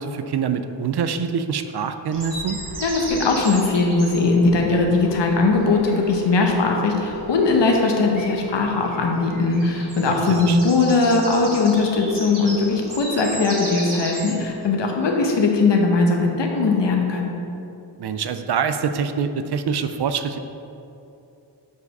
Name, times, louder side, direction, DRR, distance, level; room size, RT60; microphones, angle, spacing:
voice 1, 0.0-2.6 10.3-10.6 18.0-20.4, right 6 dB, 65° right, 9 dB, 0.5 m, -25 dB
sound 1, 2.1-14.6, right 1 dB, 50° right, 1.7 m, -36 dB
voice 2, 2.8-17.3, left 3 dB, 80° left, 1 dB, 1.0 m, -19 dB
6.7 x 4.9 x 5.4 m, 2.8 s
wide cardioid pair, 115°, 42 cm